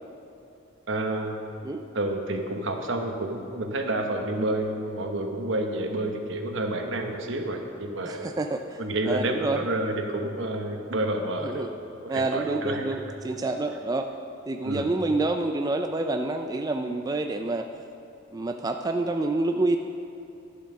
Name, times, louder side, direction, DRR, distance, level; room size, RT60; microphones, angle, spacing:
voice 1, 0.9-1.4 1.9-8.3 8.8-11.7 12.0-12.8 14.6-14.9, right 1 dB, 70° right, 4 dB, 1.1 m, -29 dB
voice 2, 8.0-8.8 9.1-9.7 11.4-11.7 12.1-14.1 14.5-17.7 18.3-19.8, right 2 dB, 20° right, 5 dB, 0.3 m, -28 dB
11.0 x 7.2 x 6.2 m, 2.8 s
head